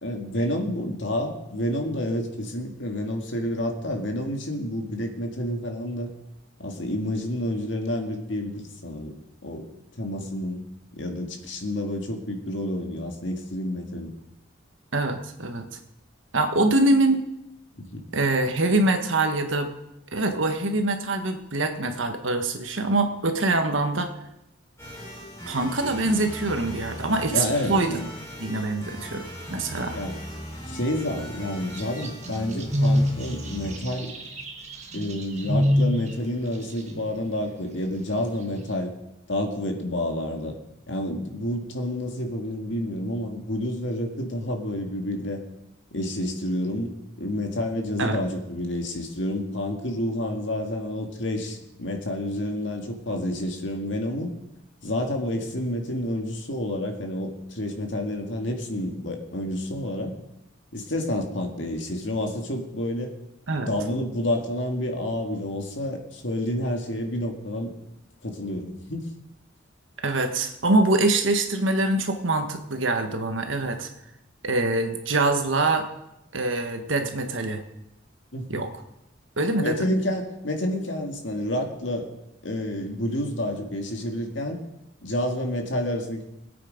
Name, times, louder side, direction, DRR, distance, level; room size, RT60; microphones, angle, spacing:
voice 1, 0.0-6.1 6.6-9.2 9.4-9.7 10.0-10.6 10.9-14.1 17.8-18.0 27.3-28.1 29.9-30.2 30.7-34.1 34.9-38.9 39.3-40.6 40.9-45.4 45.9-54.3 54.8-60.1 60.7-63.1 63.6-67.7 68.2-69.1 78.3-78.6 79.6-82.1 82.4-84.6 85.0-86.3, left 1 dB, 70° left, 3 dB, 2.0 m, -29 dB
voice 2, 14.9-15.7 16.3-17.3 18.1-19.7 20.1-24.1 25.4-27.9 28.4-30.0 48.0-48.2 63.5-63.7 70.0-73.9 74.4-75.9 76.3-77.6 78.5-78.7 79.4-79.8, right 2 dB, 80° right, 6 dB, 1.4 m, -24 dB
sound 1, 24.8-33.8, equal, 15° left, 5.7 m, -39 dB
sound 2, 31.8-36.1, equal, 35° right, 1.7 m, -24 dB
20.5 x 8.6 x 5.2 m, 0.91 s
head